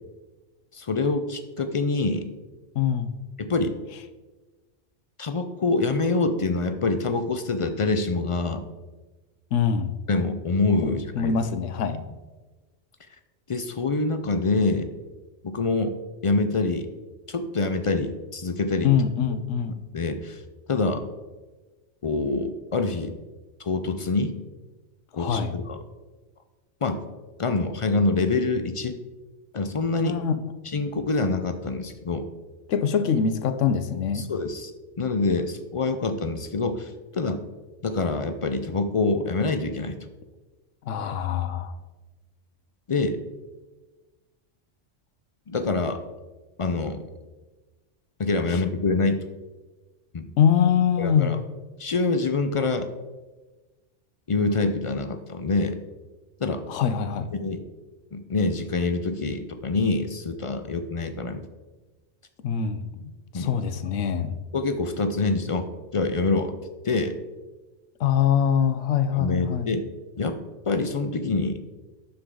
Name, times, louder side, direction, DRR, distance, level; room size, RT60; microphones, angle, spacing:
voice 1, 0.7-2.2 3.4-3.7 5.2-8.6 10.1-11.3 13.5-14.9 15.4-15.9 16.2-16.9 17.3-18.9 19.9-20.4 20.7-21.0 22.0-23.1 23.6-24.3 25.1-25.8 26.8-27.0 27.4-29.0 29.5-30.2 30.7-32.3 34.1-34.7 35.0-37.4 37.8-40.0 42.9-43.2 45.5-46.0 46.6-47.0 48.2-49.2 50.1-50.3 51.0-51.4 51.8-52.9 54.3-55.8 56.4-56.6 57.4-57.6 58.1-61.4 63.3-63.5 64.5-66.5 66.8-67.1 69.1-69.9 70.2-70.4 70.7-71.6, left 3 dB, 55° left, 8 dB, 0.3 m, -25 dB
voice 2, 2.8-3.1 9.5-9.9 10.8-12.0 18.8-19.8 25.1-25.5 30.0-30.4 32.7-34.3 40.9-41.8 48.5-48.6 50.4-51.4 56.7-57.3 62.4-63.1 63.3-64.4 68.0-69.7, left 7 dB, 90° left, 11 dB, 1.0 m, -24 dB
9.7 x 7.0 x 3.8 m, 1.2 s
omnidirectional pair, 1.2 m